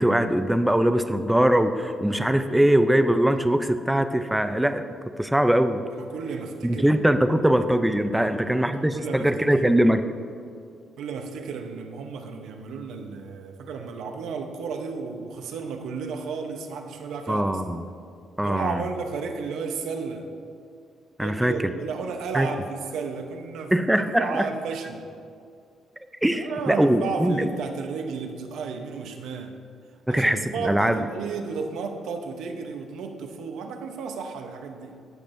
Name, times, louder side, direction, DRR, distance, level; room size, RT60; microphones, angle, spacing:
voice 1, 0.0-4.8 5.2-5.8 6.6-10.0 17.3-17.8 18.4-18.8 21.2-21.5 22.3-22.5 23.7-24.5 26.2-27.5 30.1-31.0, right 1 dB, 5° right, 9 dB, 0.5 m, -22 dB
voice 2, 5.9-7.2 8.2-9.9 11.0-17.6 18.4-20.3 21.2-25.1 26.3-29.5 30.1-35.0, right 5 dB, 80° right, 5 dB, 0.8 m, -33 dB
17.0 x 6.1 x 2.6 m, 2.3 s
cardioid pair, 90°, 0 cm